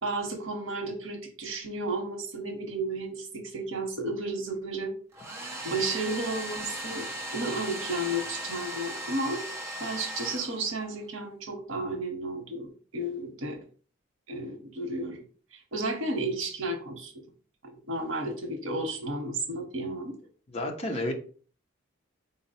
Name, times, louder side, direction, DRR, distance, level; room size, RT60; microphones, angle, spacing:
voice 1, 0.0-4.9 5.6-7.1 7.3-9.4 9.8-12.7 12.9-13.6 14.3-15.3 15.5-17.1 17.9-20.1, right 2 dB, 80° right, 4 dB, 0.9 m, -32 dB
Domestic sounds home sounds, 5.1-11.0, right 1 dB, 10° right, 0.6 m, -37 dB
voice 2, 20.5-21.1, left 1 dB, 30° left, 3 dB, 0.7 m, -31 dB
4.1 x 2.0 x 4.0 m, 0.41 s
head